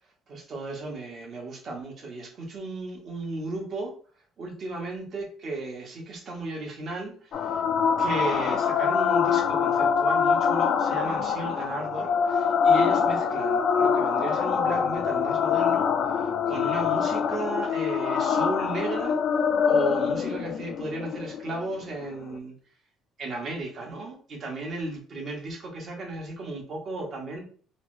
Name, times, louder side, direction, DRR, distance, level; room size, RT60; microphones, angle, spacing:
voice 1, 0.3-3.9 4.4-7.6 8.0-19.2 19.7-22.5 23.2-27.4, right 2 dB, 45° right, 0 dB, 1.1 m, -35 dB
sound 1, 7.3-22.3, left 6 dB, 55° left, 0.3 m, -24 dB
3.2 x 2.1 x 3.0 m, 0.43 s
cardioid pair, 115°, 0 cm